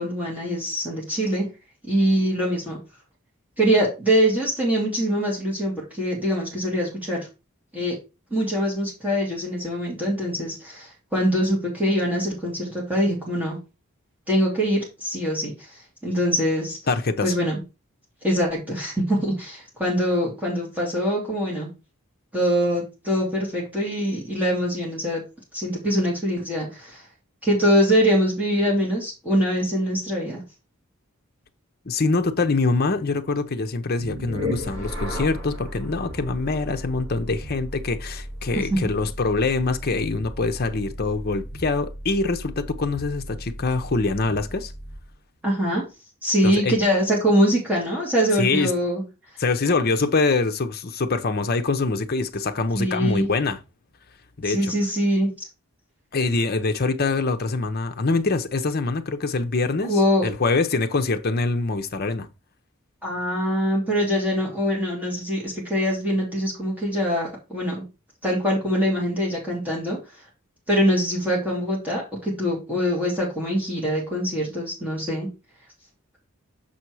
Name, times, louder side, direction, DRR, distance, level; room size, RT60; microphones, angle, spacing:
voice 1, 0.0-1.5 1.9-2.8 3.6-7.3 7.7-8.0 8.3-13.6 14.3-16.8 17.2-17.6 18.2-21.7 22.3-25.2 25.5-27.0 27.4-30.4 38.5-38.9 45.4-45.8 46.2-49.0 52.7-53.3 54.5-55.5 59.8-60.3 63.0-67.8 68.2-70.0 70.7-75.3, equal, 10° right, 2.7 m, -23 dB
voice 2, 16.9-17.3 31.8-44.7 46.4-46.7 48.3-48.7 49.4-53.6 54.4-54.7 56.1-62.3, left 3 dB, 50° left, 0.8 m, -24 dB
sound 1, 34.0-45.1, equal, 65° right, 4.7 m, -35 dB
6.9 x 4.3 x 4.7 m
head